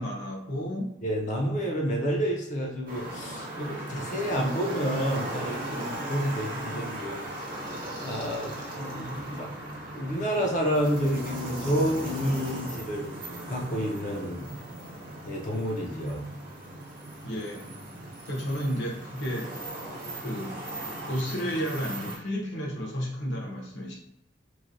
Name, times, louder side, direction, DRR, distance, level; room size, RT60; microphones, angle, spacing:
voice 1, 0.0-1.0 17.2-17.7 18.3-19.6 20.2-20.6 21.1-23.9, equal, 70° left, -2 dB, 1.0 m, -32 dB
voice 2, 1.0-7.4 8.0-9.5 9.9-13.1 13.5-14.6 15.3-16.2, equal, 45° left, 0 dB, 0.6 m, -29 dB
sound 1, 2.9-22.2, right 1 dB, 50° right, 0.8 m, -38 dB
3.1 x 2.2 x 2.5 m, 0.82 s
head